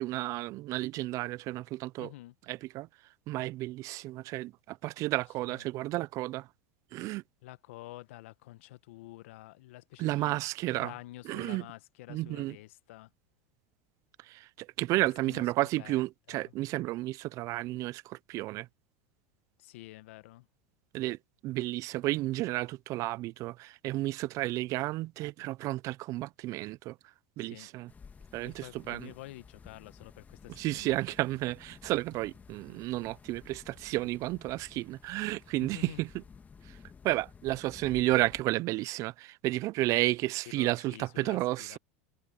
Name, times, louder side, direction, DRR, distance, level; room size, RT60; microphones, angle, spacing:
voice 1, 0.0-2.1 2.5-2.9 3.3-6.5 6.9-7.2 10.0-10.9 11.2-11.7 12.1-12.6 14.2-18.7 20.9-21.2 21.4-27.0 27.4-27.9 28.3-29.1 30.5-36.2 36.7-36.8 37.0-41.8, right 18 dB, 50° right, 0.6 m, -32 dB
voice 2, 2.0-2.3 5.5-5.7 7.4-13.1 15.3-15.5 15.8-16.0 16.3-16.5 19.6-20.5 27.4-27.7 28.4-31.0 35.6-36.0 40.5-41.8, left 18 dB, 70° left, 1.4 m, -49 dB
sound 1, 27.9-38.4, left 5 dB, 20° left, 1.7 m, -54 dB
hypercardioid pair, 95°, 7 cm